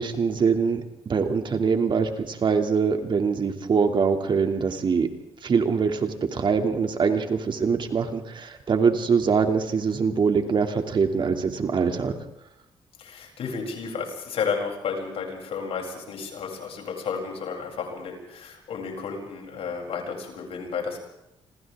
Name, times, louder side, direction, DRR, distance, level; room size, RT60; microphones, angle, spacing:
voice 1, 0.0-5.1 5.4-12.1, right 5 dB, 50° right, 5 dB, 2.8 m, -23 dB
voice 2, 13.0-21.0, left 5 dB, 70° left, 1 dB, 7.8 m, -32 dB
27.5 x 26.0 x 3.7 m, 0.87 s
cardioid pair, 80°, 10 cm